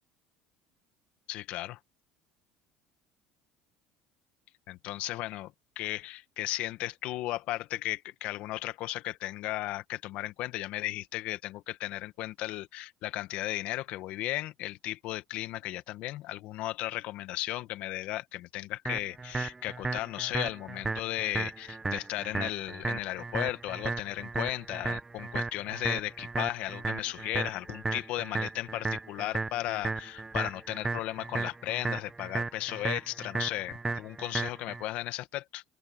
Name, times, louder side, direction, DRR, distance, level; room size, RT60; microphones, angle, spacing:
voice 1, 1.3-1.8 4.7-35.6, left 16 dB, 65° left, 1.8 m, -35 dB
sound 1, 18.9-34.8, right 3 dB, 20° right, 1.1 m, -35 dB
open air
supercardioid pair, 90°, 2 cm